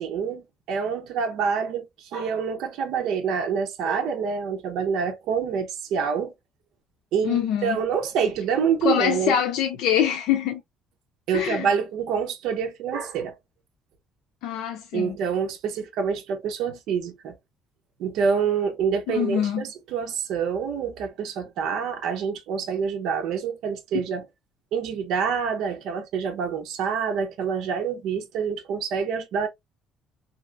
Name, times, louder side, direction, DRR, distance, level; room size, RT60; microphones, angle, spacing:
voice 1, 0.0-6.3 7.1-9.4 11.3-13.4 14.9-17.3 18.0-24.2 24.7-29.5, right 6 dB, 70° right, 0.8 m, -27 dB
voice 2, 7.2-7.8 8.8-10.6 11.3-11.7 14.4-15.2 19.1-19.6 23.9-24.0, left 9 dB, 85° left, 0.6 m, -24 dB
2.9 x 2.9 x 2.3 m
cardioid pair, 170°, 0 cm